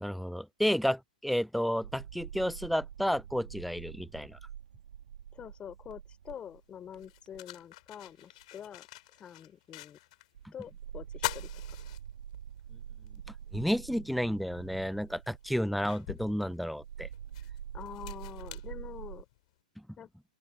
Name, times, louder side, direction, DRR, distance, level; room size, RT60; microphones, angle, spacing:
voice 1, 0.0-4.4 13.5-17.1, equal, ahead, 0.5 m, -31 dB
sound 1, 1.8-7.6 8.2-8.4 10.3-19.2, right 9 dB, 75° right, 1.7 m, -46 dB
voice 2, 5.3-8.9 9.1-10.0 10.5-11.5 17.7-19.3 20.0-20.1, left 9 dB, 25° left, 4.1 m, -46 dB
sound 2, 6.3-6.4 6.9-10.3 10.6-10.7 11.1-12.6 13.1-13.2 14.6-14.7 15.2-19.4, left 19 dB, 55° left, 6.5 m, -43 dB
open air
hypercardioid pair, 120°, 5 cm